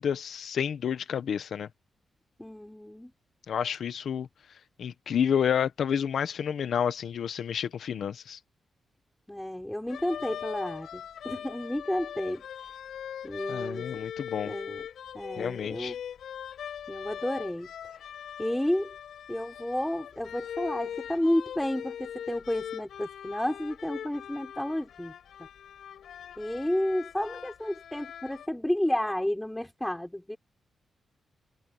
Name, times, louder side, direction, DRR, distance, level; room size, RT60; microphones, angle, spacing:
voice 1, 0.0-1.7 3.5-4.3 4.8-8.4 13.5-14.5 15.4-15.9, left 8 dB, 65° left, 1.2 m, -30 dB
voice 2, 2.4-3.1 9.3-12.4 13.2-13.9 14.4-14.9 15.1-16.0 16.9-17.7 17.9-18.0 18.4-18.9 19.3-25.1 25.4-25.5 26.4-30.4, left 1 dB, 5° left, 5.2 m, -31 dB
sound 1, 9.9-28.5, left 9 dB, 85° left, 6.9 m, -41 dB
wide cardioid pair, 170°, 0 cm